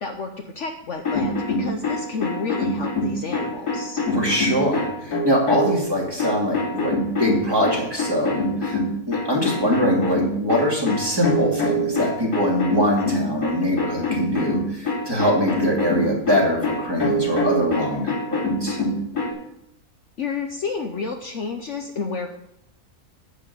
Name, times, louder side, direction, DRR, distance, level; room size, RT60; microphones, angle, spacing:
voice 1, 0.0-4.0 9.5-9.8 20.2-22.3, left 4 dB, 60° left, 4 dB, 1.1 m, -30 dB
sound 1, 0.9-5.8 6.2-19.3, left 1 dB, 90° left, 3.3 m, -25 dB
voice 2, 4.1-8.8 9.1-18.8, equal, 15° right, -3 dB, 2.6 m, -23 dB
11.0 x 4.8 x 8.1 m, 0.80 s
omnidirectional pair, 1.6 m